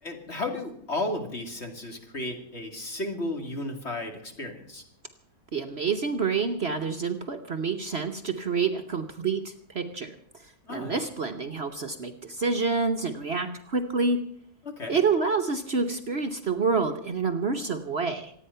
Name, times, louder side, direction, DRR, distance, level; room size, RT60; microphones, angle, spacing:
voice 1, 0.0-4.8 10.6-11.0 14.6-15.0, left 2 dB, 45° left, 3 dB, 2.7 m, -34 dB
voice 2, 5.5-14.3 14.9-18.3, right 4 dB, 45° right, 5 dB, 1.1 m, -28 dB
26.5 x 9.4 x 5.6 m, 0.68 s
omnidirectional pair, 1.6 m